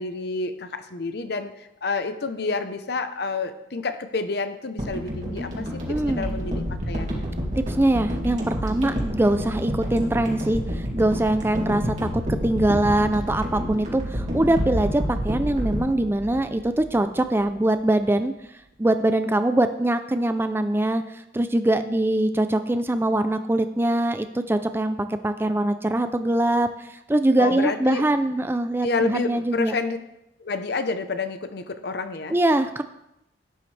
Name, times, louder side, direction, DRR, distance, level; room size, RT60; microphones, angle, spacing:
voice 1, 0.0-7.3 27.4-28.0 28.8-30.0 30.4-32.3, left 3 dB, 60° left, 9 dB, 0.9 m, -29 dB
sound 1, 4.8-17.1 17.4-17.5, equal, 40° right, 2.4 m, -29 dB
voice 2, 5.9-6.4 7.7-18.3 18.8-29.7 32.3-32.8, right 1 dB, 15° right, 9 dB, 0.4 m, -23 dB
12.0 x 9.9 x 3.3 m, 0.84 s
head